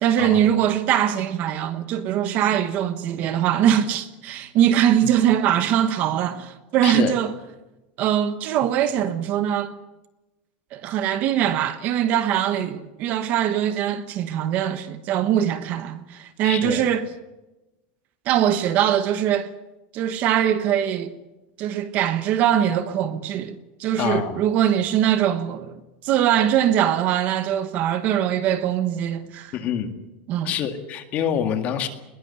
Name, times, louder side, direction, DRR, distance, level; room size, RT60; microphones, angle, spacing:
voice 1, 0.0-7.3 8.0-9.8 10.7-17.1 18.2-19.5 19.9-21.1 21.6-25.7 26.0-29.5 30.3-30.5, right 10 dB, 35° right, 1.2 m, -22 dB
voice 2, 6.8-7.1 16.4-16.8 24.0-24.4 29.5-29.9 30.4-31.9, left 9 dB, 30° left, 2.0 m, -26 dB
21.5 x 18.5 x 9.5 m
supercardioid pair, 180°, 5 cm